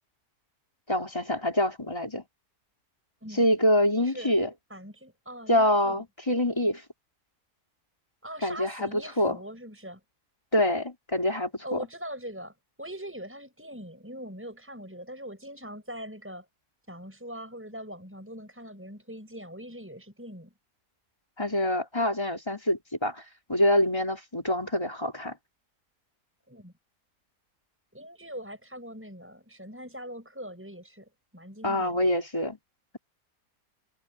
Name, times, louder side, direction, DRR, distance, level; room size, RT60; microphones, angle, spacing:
voice 1, 0.9-2.2 3.4-4.5 5.5-6.8 8.4-8.9 9.2-9.4 10.5-11.8 21.4-23.2 23.5-25.3 31.6-32.6, left 1 dB, 15° left, 4.1 m, -25 dB
voice 2, 4.7-6.0 8.2-10.0 11.6-16.5 16.9-20.5 26.5-26.7 27.9-32.1, equal, 5° right, 6.5 m, -42 dB
omnidirectional pair, 1.7 m